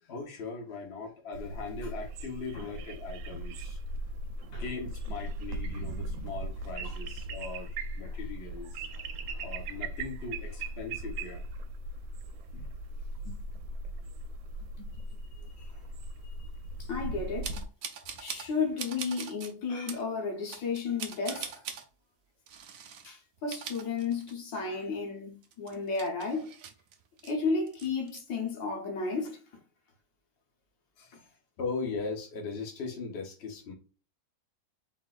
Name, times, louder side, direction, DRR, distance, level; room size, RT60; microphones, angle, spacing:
voice 1, 0.0-3.8 4.6-8.9 9.4-11.4 12.5-12.7 15.6-15.7 24.7-24.9 31.0-31.3 31.6-33.7, left 4 dB, 40° left, 1.1 m, -39 dB
sound 1, 1.3-17.7, right 1 dB, 85° right, 1.3 m, -38 dB
voice 2, 16.8-17.6 18.2-21.6 23.0-26.6 27.2-29.4, left 4 dB, 75° left, 1.7 m, -33 dB
sound 2, 17.4-18.5 18.8-19.5 19.9-20.0 20.5-21.8 22.5-23.1 23.4-24.6 24.9-25.0 25.4-27.3 27.7-28.2, right 7 dB, 65° right, 0.8 m, -42 dB
4.0 x 3.8 x 2.5 m
omnidirectional pair, 2.0 m